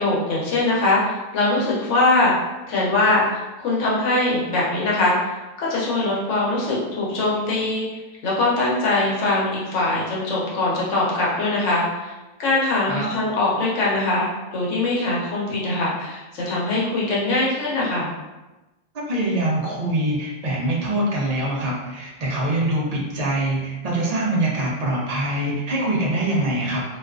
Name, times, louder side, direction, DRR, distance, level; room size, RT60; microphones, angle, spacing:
voice 1, 0.0-2.3 2.7-7.9 8.2-12.1 12.4-14.3 14.5-18.1, left 2 dB, 90° left, -5 dB, 1.1 m, -22 dB
voice 2, 18.9-26.8, right 1 dB, 55° right, -4 dB, 0.4 m, -24 dB
2.5 x 2.3 x 2.3 m, 1.1 s
omnidirectional pair, 1.2 m